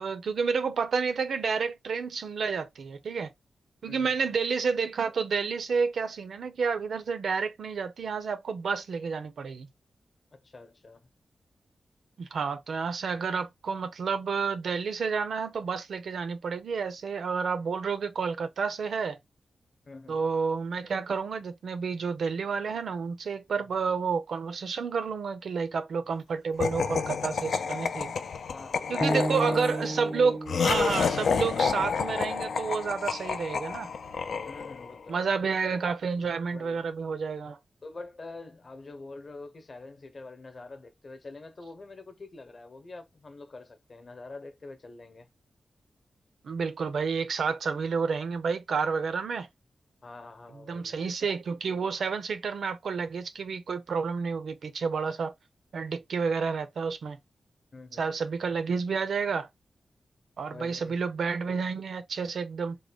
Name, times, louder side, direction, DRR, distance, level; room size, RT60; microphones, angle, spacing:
voice 1, 0.0-3.3 3.8-9.7 12.2-19.2 20.1-28.1 28.9-33.9 35.1-37.6 46.4-49.5 50.7-55.3 55.7-57.2 58.0-59.5 60.4-62.8, right 5 dB, 80° right, 0.6 m, -30 dB
voice 2, 3.9-4.2 10.3-11.1 19.8-20.2 23.6-23.8 28.3-30.2 34.4-35.3 36.5-36.9 37.8-45.3 50.0-51.0 57.7-58.0 60.5-61.0, left 3 dB, 40° left, 0.8 m, -45 dB
Laughter, 26.6-35.0, left 5 dB, 85° left, 0.4 m, -30 dB
sound 1, 29.0-33.1, right 2 dB, 15° right, 0.4 m, -35 dB
3.7 x 2.2 x 3.4 m
wide cardioid pair, 145°, 0 cm